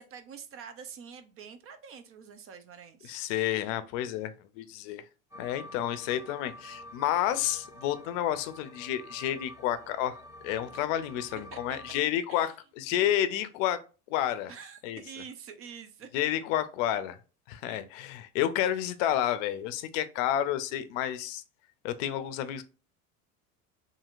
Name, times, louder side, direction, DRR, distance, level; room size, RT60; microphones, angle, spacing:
voice 1, 0.0-3.2 11.5-11.8 12.3-12.5 14.5-16.1, right 7 dB, 35° right, 0.4 m, -46 dB
voice 2, 3.0-5.0 5.4-10.2 10.4-13.8 14.1-14.5 14.8-15.0 16.1-17.2 17.5-21.4 21.8-22.6, left 11 dB, 65° left, 0.5 m, -30 dB
sound 1, 5.3-12.0, left 1 dB, 5° right, 0.9 m, -48 dB
2.8 x 2.7 x 2.4 m
hypercardioid pair, 95°, 41 cm